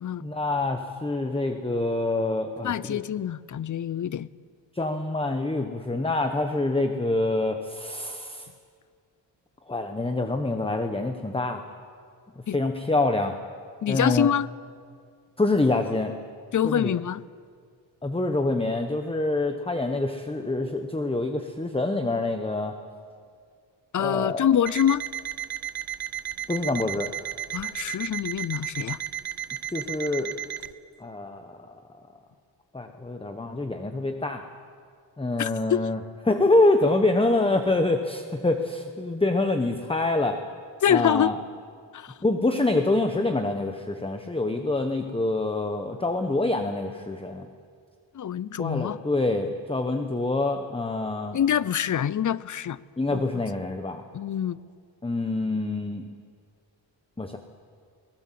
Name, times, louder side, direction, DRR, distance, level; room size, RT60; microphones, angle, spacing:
voice 1, 0.2-3.0 4.7-8.5 9.7-11.6 12.5-13.3 13.9-14.3 15.4-16.1 16.6-17.0 18.0-22.8 24.0-24.5 26.5-27.1 29.7-30.3 31.0-31.6 32.7-34.5 35.2-36.0 36.3-40.4 40.9-41.4 42.2-47.5 48.6-51.4 53.0-54.0 55.0-56.1 57.2-57.4, left 2 dB, 10° left, 6 dB, 1.2 m, -26 dB
voice 2, 2.6-4.3 12.5-12.6 13.8-14.5 16.5-17.2 23.9-25.0 27.5-29.0 35.4-35.8 40.8-41.3 41.9-42.1 48.1-49.0 51.3-52.8 53.1-53.2 54.1-54.6, left 9 dB, 45° left, 19 dB, 0.6 m, -25 dB
Alarm, 24.7-30.7, right 10 dB, 55° right, 0.8 m, -34 dB
23.0 x 19.5 x 7.7 m, 2.1 s
wide cardioid pair, 110°, 45 cm